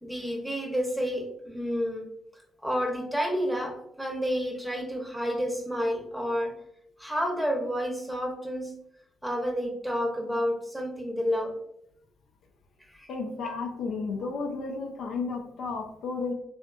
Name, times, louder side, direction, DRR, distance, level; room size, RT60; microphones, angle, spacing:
voice 1, 0.0-2.0 2.6-6.5 7.0-8.7 9.2-11.5 12.9-13.1, equal, 5° right, 2 dB, 0.7 m, -30 dB
voice 2, 13.1-16.3, left 4 dB, 70° left, 2 dB, 0.4 m, -33 dB
2.5 x 2.5 x 2.2 m, 0.74 s
hypercardioid pair, 40°, 0 cm